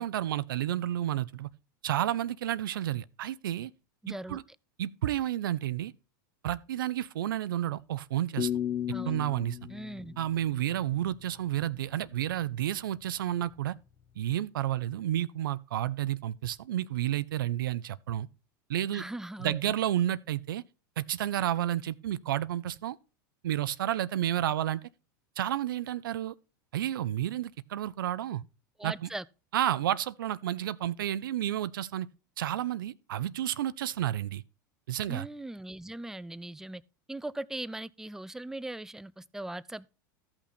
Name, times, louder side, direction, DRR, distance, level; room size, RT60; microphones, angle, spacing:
voice 1, 0.0-1.5 1.8-3.7 4.1-4.4 4.8-5.9 6.4-8.5 9.0-9.7 10.2-13.7 14.2-18.3 18.7-19.0 19.4-20.6 21.0-23.0 23.4-24.8 25.4-26.3 26.7-28.4 28.8-29.1 29.5-32.1 32.4-34.4 34.9-35.3, right 12 dB, 80° right, 0.5 m, -31 dB
voice 2, 4.0-4.4 8.9-9.1 9.7-10.2 18.9-19.6 28.8-29.2 35.1-36.8 37.1-39.9, right 1 dB, 5° right, 0.4 m, -39 dB
sound 1, 8.4-11.3, left 10 dB, 40° left, 0.8 m, -35 dB
13.5 x 5.8 x 4.2 m
hypercardioid pair, 100°, 11 cm